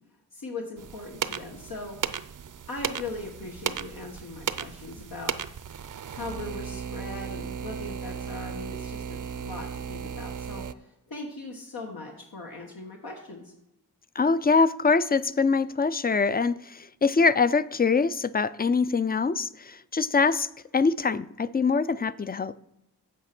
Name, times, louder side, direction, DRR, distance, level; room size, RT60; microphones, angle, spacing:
voice 1, 0.3-2.0 2.7-5.3 6.1-13.5, left 2 dB, 75° left, 1.4 m, -39 dB
sound 1, 0.8-10.7, right 7 dB, 55° right, 0.6 m, -35 dB
voice 2, 14.1-22.5, left 4 dB, 25° left, 0.4 m, -24 dB
8.3 x 6.9 x 6.0 m
cardioid pair, 60°, 37 cm